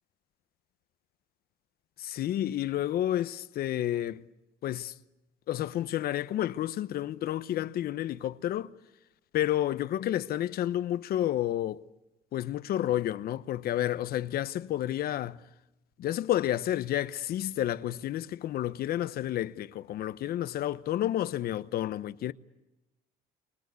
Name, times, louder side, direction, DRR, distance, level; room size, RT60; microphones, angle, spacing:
voice 1, 2.0-4.2 4.6-4.9 5.5-8.7 9.3-11.8 12.3-15.4 16.0-22.3, left 12 dB, 65° left, 1.0 m, -30 dB
29.0 x 24.5 x 8.3 m
cardioid pair, 110°, 17 cm